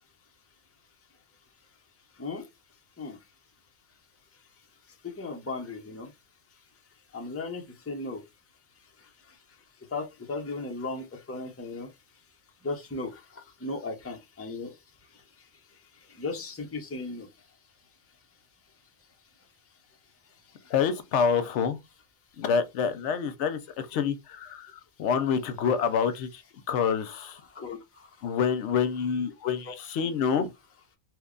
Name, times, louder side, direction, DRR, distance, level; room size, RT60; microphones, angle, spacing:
voice 1, 5.2-6.1 7.1-8.2 9.9-11.9 12.6-13.2 13.6-14.7 16.2-17.3 27.0-27.2 27.5-27.8 29.6-29.7 30.0-30.5, left 3 dB, 15° left, 0.6 m, -36 dB
voice 2, 20.7-21.8 22.4-24.7 25.0-26.4 26.7-27.4 28.2-30.5, left 6 dB, 80° left, 0.9 m, -27 dB
3.1 x 2.2 x 3.7 m
omnidirectional pair, 1.2 m